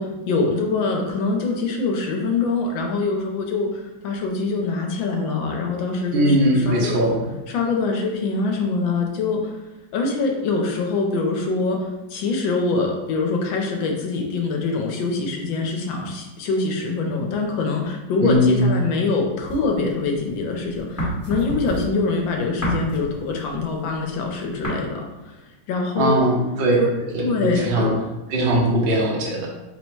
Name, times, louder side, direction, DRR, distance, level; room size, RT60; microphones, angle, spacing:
voice 1, 0.0-7.1 7.5-9.5 9.9-25.4 25.7-26.2 26.8-26.9 27.2-27.9, left 3 dB, 75° left, 2 dB, 1.4 m, -24 dB
voice 2, 6.1-7.3 18.2-18.7 26.0-27.9 28.3-29.5, right 1 dB, 55° right, -3 dB, 0.6 m, -20 dB
sound 1, 19.4-20.4 20.7-24.7, equal, 10° left, 0.8 m, -28 dB
4.1 x 2.1 x 4.5 m, 1.0 s
omnidirectional pair, 2.2 m